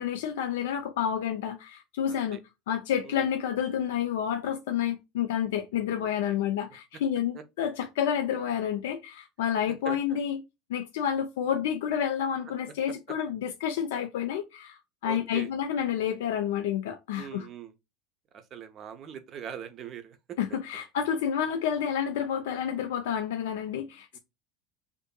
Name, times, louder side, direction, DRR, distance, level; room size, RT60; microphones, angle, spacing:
voice 1, 0.0-2.4 2.7-10.4 10.7-17.5 20.4-24.2, left 9 dB, 85° left, 0.3 m, -29 dB
voice 2, 2.1-2.4 3.0-3.3 5.9-6.4 7.3-7.4 9.8-10.2 15.0-15.5 17.1-17.7 18.3-20.4 24.1-24.2, right 8 dB, 45° right, 0.5 m, -42 dB
2.6 x 2.5 x 2.2 m
supercardioid pair, 110°, 0 cm